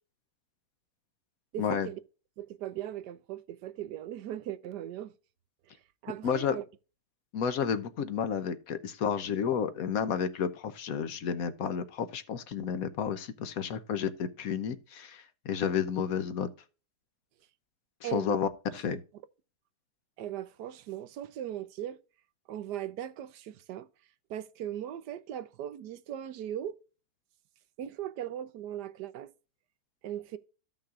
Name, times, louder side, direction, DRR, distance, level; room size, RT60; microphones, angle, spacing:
voice 1, 1.5-2.0 2.4-5.1 5.7-6.6 18.0-18.3 18.7-19.0 20.2-22.0 22.5-23.9 24.3-26.8 27.8-29.3 30.0-30.4, right 11 dB, 90° right, 1.3 m, -38 dB
voice 2, 6.2-6.6 7.3-16.5 18.0-19.0, left 7 dB, 65° left, 1.2 m, -31 dB
14.5 x 5.7 x 2.5 m
omnidirectional pair, 1.7 m